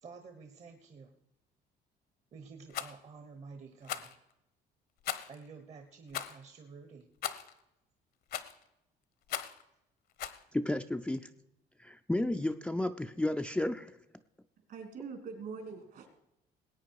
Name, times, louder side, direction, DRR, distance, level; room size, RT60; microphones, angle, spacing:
voice 1, 0.0-1.1 2.3-4.2 5.3-7.1, right 4 dB, 40° right, 6 dB, 1.1 m, -50 dB
Rattle, 2.7-2.9 3.8-4.2 5.0-5.4 6.1-6.4 7.2-7.5 8.3-8.6 9.3-9.6 10.2-10.4, left 10 dB, 65° left, 0.9 m, -38 dB
voice 2, 10.5-11.3 11.8-13.9, left 1 dB, 5° left, 8 dB, 0.4 m, -32 dB
voice 3, 14.7-16.2, right 5 dB, 60° right, 5 dB, 2.8 m, -43 dB
19.0 x 8.7 x 4.7 m, 0.87 s
cardioid pair, 110°, 17 cm